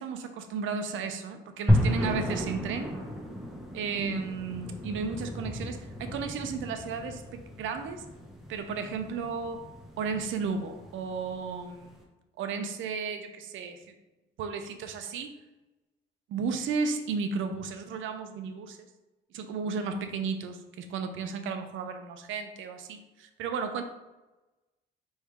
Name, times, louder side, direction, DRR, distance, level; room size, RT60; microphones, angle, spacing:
voice 1, 0.0-2.9 3.7-8.0 8.5-9.6 10.0-12.1 12.4-13.8 14.4-15.3 16.3-18.8 19.3-23.8, right 5 dB, 80° right, 7 dB, 0.6 m, -34 dB
sound 1, 1.7-11.9, left 1 dB, ahead, 1.0 m, -33 dB
4.6 x 3.2 x 3.6 m, 1.1 s
cardioid pair, 90°, 20 cm